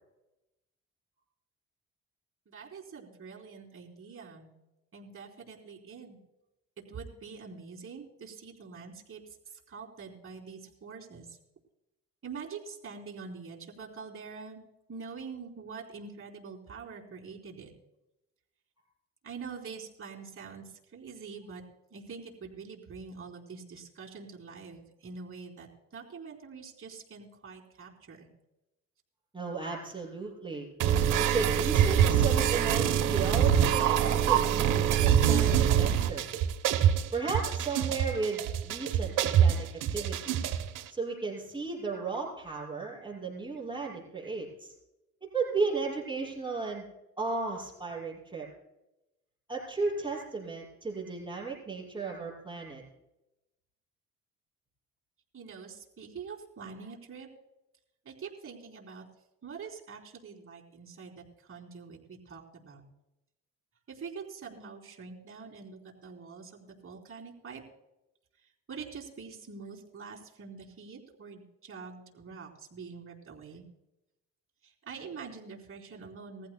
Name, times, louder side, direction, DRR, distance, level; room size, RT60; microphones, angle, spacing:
voice 1, 2.5-4.5 4.9-6.2 6.9-11.4 12.2-17.7 19.2-21.6 21.9-28.3 55.3-57.3 58.1-59.0 59.4-62.8 63.9-67.6 68.4-73.6 74.6-76.5, right 5 dB, 45° right, -1 dB, 3.8 m, -45 dB
voice 2, 29.3-30.7 31.2-36.3 37.1-39.7 39.9-40.4 40.9-44.7 45.3-46.8 47.2-48.5 49.5-52.8, right 4 dB, 15° right, -5 dB, 6.2 m, -35 dB
sound 1, 30.8-40.8, right 9 dB, 85° right, 1.1 m, -25 dB
20.5 x 15.0 x 2.3 m, 0.93 s
cardioid pair, 90°, 30 cm